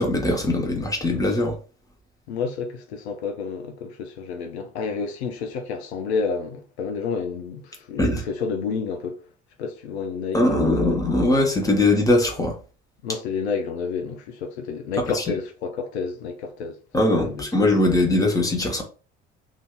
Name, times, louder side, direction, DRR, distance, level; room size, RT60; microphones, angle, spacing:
voice 1, 0.0-1.6 8.0-8.2 10.3-12.6 15.1-15.2 16.9-18.8, left 2 dB, 10° left, 1.0 m, -21 dB
voice 2, 2.3-9.2 9.6-11.1 13.0-16.8 17.2-17.5, left 5 dB, 70° left, 0.6 m, -30 dB
2.6 x 2.4 x 3.5 m
figure-of-eight pair, 55°, 34 cm